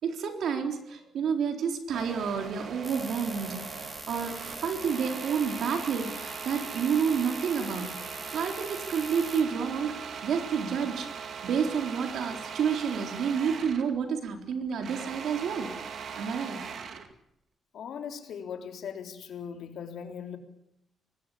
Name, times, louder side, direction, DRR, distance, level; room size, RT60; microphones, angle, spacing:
voice 1, 0.0-3.6 4.1-7.9 8.3-11.1 11.4-15.7 16.2-16.7, right 6 dB, 70° right, 3.8 m, -29 dB
sound 1, 1.9-13.9 14.3-17.1, right 6 dB, 55° right, 2.4 m, -40 dB
sound 2, 2.8-9.4, right 1 dB, 10° right, 3.4 m, -43 dB
voice 2, 17.7-20.4, left 7 dB, 70° left, 3.5 m, -39 dB
25.0 x 19.5 x 8.7 m
wide cardioid pair, 160°, 0 cm